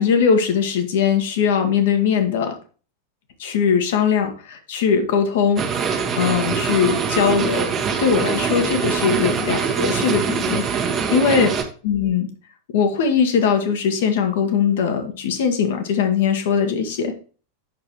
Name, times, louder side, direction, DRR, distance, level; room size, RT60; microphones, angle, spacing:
voice 1, 0.0-2.5 3.4-7.7 8.0-10.6 11.1-11.6 11.8-12.3 12.7-17.1, left 6 dB, 55° left, 6 dB, 1.4 m, -20 dB
sound 1, 5.6-11.6, right 6 dB, 25° right, 1.4 m, -23 dB
8.8 x 6.4 x 3.0 m, 0.38 s
figure-of-eight pair, 90°, 0 cm